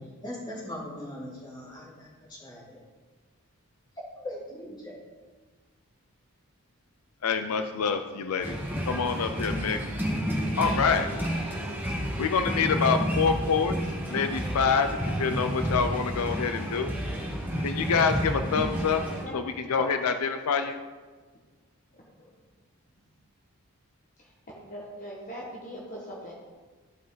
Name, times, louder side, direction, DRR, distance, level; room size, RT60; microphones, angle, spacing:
voice 1, 0.2-2.8 4.2-5.0, left 1 dB, 20° left, -6 dB, 2.7 m, -40 dB
voice 2, 7.2-8.6 8.9-9.8 10.5-11.1 12.2-13.7 14.1-16.9 17.6-19.0 19.3-20.8, left 5 dB, 80° left, 8 dB, 0.5 m, -26 dB
sound 1, 8.4-19.2, equal, 10° right, 1.4 m, -30 dB
voice 3, 19.0-19.4 19.8-19.9 21.9-22.3 24.2-26.3, equal, 35° left, -4 dB, 1.4 m, -41 dB
14.0 x 5.1 x 3.9 m, 1.4 s
head